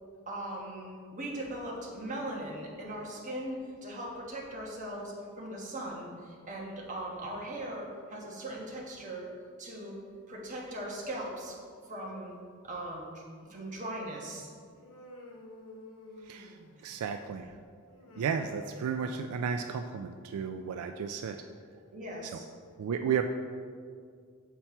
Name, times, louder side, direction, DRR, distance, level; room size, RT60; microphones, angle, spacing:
voice 1, 0.3-9.3 9.6-10.0 10.3-11.5 11.9-12.4 12.6-13.2 13.5-14.5 21.9-22.5, right 1 dB, 35° right, -3 dB, 1.2 m, -39 dB
Human voice, 14.7-17.0 17.9-19.7, left 1 dB, 85° left, 1.2 m, -51 dB
voice 2, 16.8-17.5 18.2-21.4 22.2-22.4 22.8-23.2, right 7 dB, 75° right, 7 dB, 0.3 m, -33 dB
7.2 x 4.4 x 4.4 m, 2.1 s
head